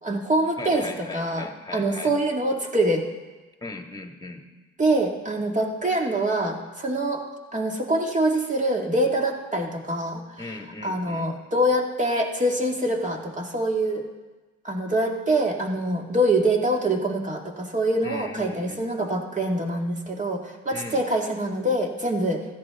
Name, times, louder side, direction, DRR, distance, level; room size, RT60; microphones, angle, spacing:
voice 1, 0.0-3.1 4.8-7.2 7.5-10.4 10.8-14.0 14.6-22.5, right 1 dB, 25° right, 1 dB, 2.2 m, -25 dB
voice 2, 0.6-2.1 3.6-4.4 10.4-11.3 18.0-18.8 20.7-21.0, left 3 dB, 10° left, 3 dB, 1.9 m, -38 dB
15.5 x 13.5 x 3.7 m, 1.2 s
cardioid pair, 90°, 30 cm